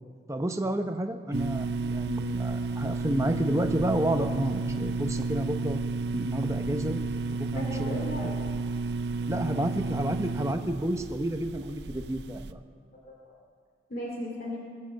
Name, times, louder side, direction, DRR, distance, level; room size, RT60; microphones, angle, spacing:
voice 1, 0.3-5.8 6.1-7.0 7.4-8.0 9.3-12.6, right 1 dB, 15° right, 6 dB, 0.9 m, -30 dB
sound 1, 1.3-12.5, right 3 dB, 65° right, 0.5 m, -32 dB
voice 2, 7.5-8.4 9.2-9.6 13.0-13.4 13.9-14.6, equal, 55° left, -3 dB, 2.5 m, -37 dB
21.5 x 7.7 x 7.7 m, 2.1 s
head